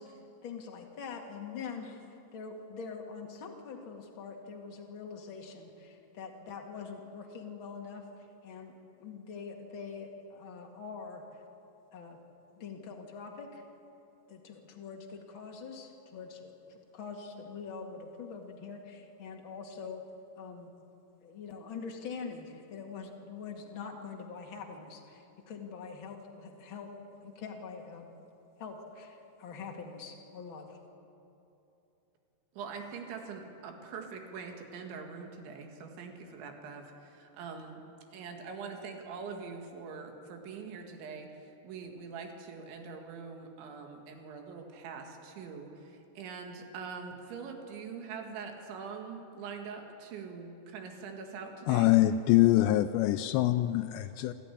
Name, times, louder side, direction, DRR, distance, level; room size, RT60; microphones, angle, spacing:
voice 1, 0.0-2.0 2.3-8.0 8.4-8.7 9.0-11.2 11.9-12.2 12.6-13.6 14.3-20.0 20.4-20.7 21.2-26.9 27.2-28.1 28.6-30.8, left 5 dB, 40° left, 1 dB, 1.9 m, -44 dB
voice 2, 32.6-37.8 38.1-51.9, right 5 dB, 85° right, 3 dB, 4.3 m, -43 dB
voice 3, 51.7-54.3, left 15 dB, 80° left, 9 dB, 2.8 m, -24 dB
27.0 x 13.5 x 10.0 m, 2.8 s
omnidirectional pair, 5.2 m